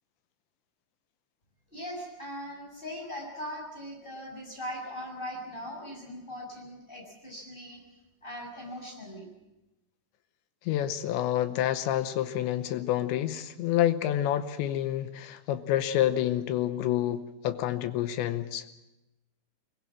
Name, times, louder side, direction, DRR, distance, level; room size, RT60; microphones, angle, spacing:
voice 1, 1.7-7.8 8.2-9.3, equal, 10° left, 0 dB, 6.3 m, -40 dB
voice 2, 10.7-18.7, left 12 dB, 75° left, 10 dB, 3.0 m, -28 dB
22.5 x 21.0 x 7.5 m, 0.98 s
omnidirectional pair, 5.6 m